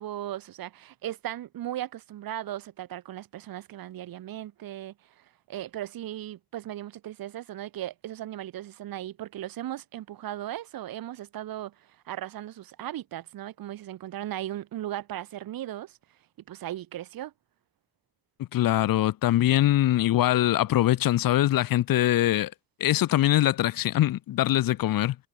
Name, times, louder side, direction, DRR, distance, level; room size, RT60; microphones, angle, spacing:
voice 1, 0.0-16.0 16.5-17.3, right 12 dB, 85° right, 1.4 m, -37 dB
voice 2, 18.4-22.5 22.8-25.2, left 14 dB, 75° left, 0.7 m, -23 dB
cardioid pair, 65°, 34 cm